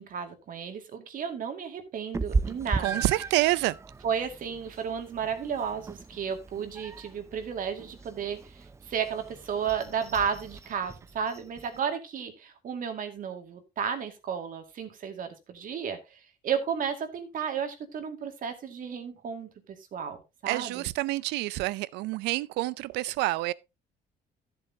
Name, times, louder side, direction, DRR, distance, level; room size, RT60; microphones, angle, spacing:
voice 1, 0.0-3.0 4.0-20.2 20.4-20.8, right 7 dB, 55° right, 2.2 m, -33 dB
Meow, 2.1-11.8, right 4 dB, 15° right, 0.4 m, -37 dB
voice 2, 2.8-3.8 20.5-23.5, right 18 dB, 90° right, 0.5 m, -28 dB
13.0 x 7.9 x 2.8 m
cardioid pair, 110°, 17 cm